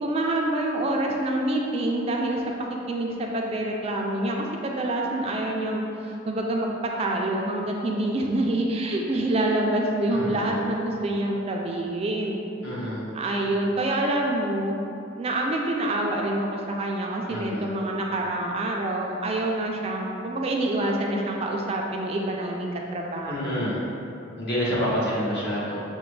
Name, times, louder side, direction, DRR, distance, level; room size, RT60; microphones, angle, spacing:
voice 1, 0.0-2.4 2.7-6.7 7.0-12.4 13.1-14.7 15.2-23.4, right 1 dB, 30° right, 0 dB, 0.3 m, -26 dB
voice 2, 10.1-10.6 12.6-13.1 17.3-17.7 23.3-23.8 24.4-25.8, equal, 60° left, -7 dB, 1.1 m, -28 dB
5.9 x 2.1 x 3.1 m, 2.7 s
head